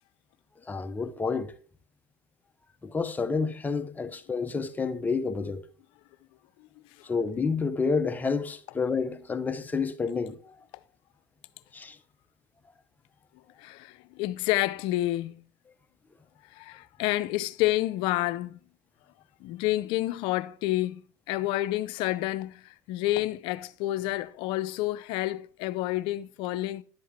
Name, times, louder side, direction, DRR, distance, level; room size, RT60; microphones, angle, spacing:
voice 1, 0.7-1.5 2.8-5.6 7.0-10.5 11.7-12.0, left 4 dB, 15° left, 0.8 m, -29 dB
voice 2, 13.6-15.4 16.5-18.6 19.4-26.8, left 16 dB, 65° left, 0.6 m, -29 dB
11.0 x 7.7 x 3.5 m
supercardioid pair, 110°, 10 cm